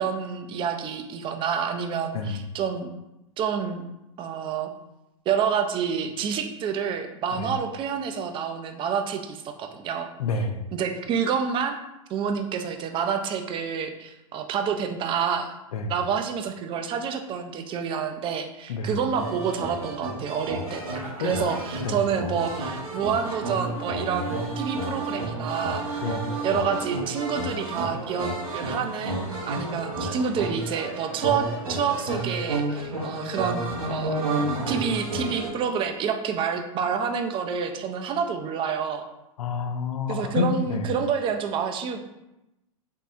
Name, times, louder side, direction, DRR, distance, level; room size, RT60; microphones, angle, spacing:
voice 1, 0.0-2.9 3.4-3.8 4.2-4.7 5.3-10.1 10.7-11.8 12.1-15.5 15.9-25.8 26.4-34.2 34.7-39.1 40.1-42.0, right 7 dB, 30° right, 7 dB, 0.4 m, -28 dB
voice 2, 10.2-10.6 15.7-15.9 18.7-18.9 21.2-21.3 21.8-22.0 26.0-26.3 39.4-40.8, left 4 dB, 75° left, 5 dB, 0.6 m, -28 dB
sound 1, 19.1-35.5, right 2 dB, 80° right, 0.9 m, -31 dB
3.5 x 3.2 x 2.6 m, 0.92 s
hypercardioid pair, 100°, 18 cm